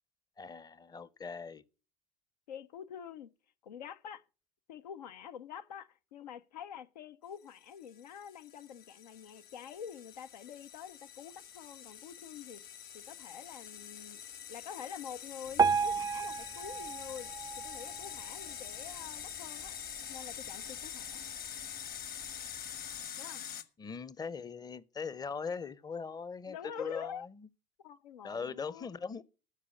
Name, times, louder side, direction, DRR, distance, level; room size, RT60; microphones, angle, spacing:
voice 1, 0.4-1.6 23.8-27.5 28.2-29.2, left 5 dB, 20° left, 0.7 m, -40 dB
voice 2, 2.5-3.3 3.6-4.2 4.7-12.6 12.9-14.2 14.5-17.3 17.6-19.7 20.0-21.2 23.2-23.4 26.5-27.3 27.8-28.9, left 8 dB, 80° left, 0.6 m, -46 dB
sound 1, 7.6-23.6, left 9 dB, 45° left, 1.3 m, -45 dB
Piano, 15.6-18.7 19.2-19.4 19.7-19.8 20.5-20.6 21.1-21.2, right 5 dB, 20° right, 0.4 m, -32 dB
13.0 x 4.9 x 7.0 m
figure-of-eight pair, 70°, 21 cm